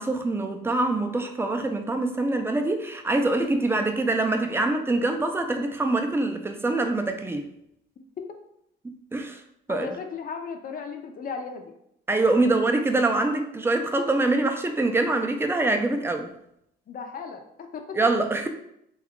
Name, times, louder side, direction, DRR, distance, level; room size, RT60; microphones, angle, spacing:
voice 1, 0.0-7.5 8.8-9.4 9.7-9.9 12.1-16.3 17.9-18.5, right 2 dB, 10° right, 5 dB, 0.4 m, -24 dB
voice 2, 9.7-11.6 16.9-18.0, left 5 dB, 45° left, 5 dB, 0.5 m, -36 dB
2.9 x 2.3 x 3.6 m, 0.76 s
cardioid pair, 90°, 20 cm